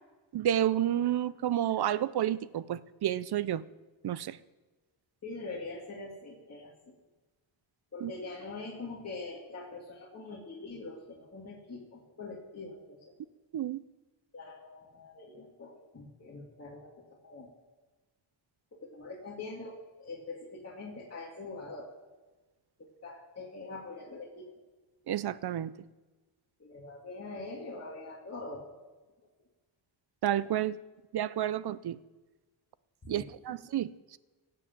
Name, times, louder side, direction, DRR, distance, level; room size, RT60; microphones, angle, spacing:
voice 1, 0.3-3.6 4.0-4.4 8.0-8.1 13.5-13.8 25.1-25.7 30.2-30.8 31.1-32.0 33.1-34.2, right 11 dB, 55° right, 0.6 m, -30 dB
voice 2, 5.2-6.7 7.9-13.0 14.3-17.5 18.7-21.9 22.8-24.5 26.6-28.7 33.0-33.3, left 3 dB, 30° left, 2.3 m, -43 dB
16.5 x 8.0 x 7.3 m
wide cardioid pair, 135°, 49 cm